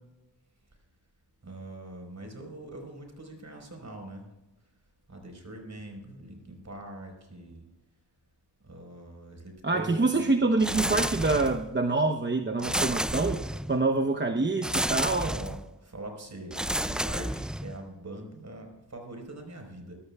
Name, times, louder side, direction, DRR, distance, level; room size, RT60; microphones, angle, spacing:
voice 1, 1.4-4.3 5.1-7.7 8.6-10.3 15.3-19.9, right 2 dB, 45° right, 3 dB, 4.7 m, -43 dB
voice 2, 9.6-13.4 13.7-15.3, right 3 dB, 25° right, 4 dB, 0.9 m, -26 dB
sound 1, 10.6-11.7 12.6-13.8 14.6-15.7 16.5-17.8, right 1 dB, ahead, 0.4 m, -30 dB
20.0 x 13.5 x 2.4 m, 1.0 s
cardioid pair, 55°, 41 cm